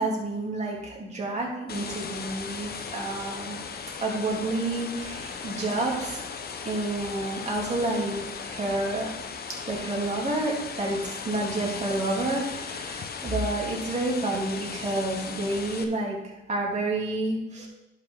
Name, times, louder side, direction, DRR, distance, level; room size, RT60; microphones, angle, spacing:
voice 1, 0.0-3.6 4.0-6.2 6.6-9.1 9.7-16.2 16.5-17.7, right 2 dB, 35° right, -3 dB, 3.3 m, -29 dB
sound 1, 1.7-15.8, left 5 dB, 50° left, 1.0 m, -37 dB
11.5 x 5.9 x 4.1 m, 0.96 s
cardioid pair, 90°, 20 cm